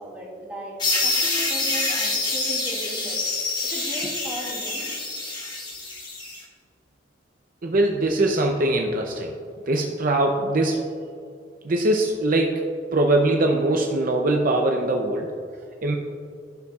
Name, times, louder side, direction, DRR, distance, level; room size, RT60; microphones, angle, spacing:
voice 1, 0.0-4.9 5.7-5.8, right 1 dB, 10° right, -6 dB, 2.1 m, -37 dB
sound 1, 0.8-6.4, left 2 dB, 25° left, 1.4 m, -26 dB
voice 2, 7.6-9.3 9.7-10.9 11.6-15.3 15.8-16.0, right 2 dB, 50° right, 2 dB, 0.6 m, -22 dB
15.5 x 5.5 x 2.4 m, 2.3 s
head